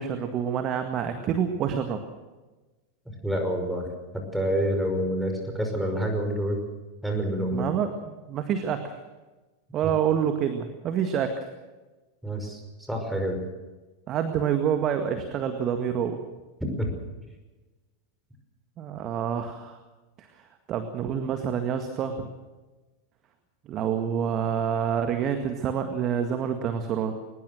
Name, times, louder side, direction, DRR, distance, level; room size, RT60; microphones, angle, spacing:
voice 1, 0.0-2.0 7.5-9.0 9.7-11.4 14.1-16.2 18.8-19.8 20.2-20.3 20.7-22.3 23.7-27.1, right 8 dB, 35° right, 7 dB, 1.9 m, -27 dB
voice 2, 3.1-3.9 4.1-6.6 7.0-7.7 12.2-12.6 12.9-13.4 16.8-16.9, equal, ahead, 3 dB, 5.7 m, -27 dB
22.5 x 20.0 x 6.4 m, 1.2 s
figure-of-eight pair, 90°, 0 cm